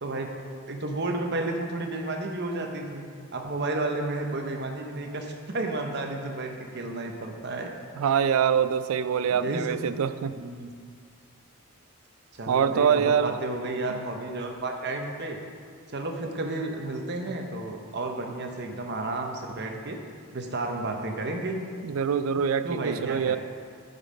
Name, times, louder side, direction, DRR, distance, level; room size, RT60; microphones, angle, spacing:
voice 1, 0.0-0.3 0.7-3.1 3.3-7.7 9.3-9.8 10.4-10.7 12.3-15.4 15.9-20.0 20.3-21.6 22.6-23.4, right 2 dB, 50° right, 3 dB, 0.9 m, -32 dB
voice 2, 7.9-10.4 12.5-13.4 21.8-23.4, right 7 dB, 70° right, 13 dB, 0.3 m, -24 dB
9.6 x 5.3 x 5.1 m, 2.1 s
head